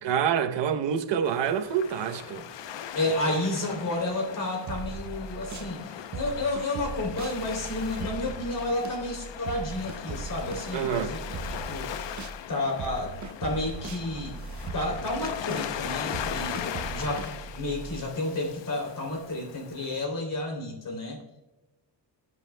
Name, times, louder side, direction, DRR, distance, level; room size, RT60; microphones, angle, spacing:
voice 1, 0.0-2.5 10.7-11.1, right 8 dB, 85° right, 0.9 m, -27 dB
Waves surf, 1.2-20.0, left 9 dB, 90° left, 0.8 m, -39 dB
voice 2, 2.9-12.1 12.5-13.1 13.4-14.4 14.7-21.2, left 2 dB, 50° left, 3.0 m, -31 dB
sound 1, 4.7-5.7 6.1-12.4 12.8-18.0, right 4 dB, 45° right, 0.8 m, -39 dB
19.0 x 8.2 x 2.2 m
wide cardioid pair, 150°, 42 cm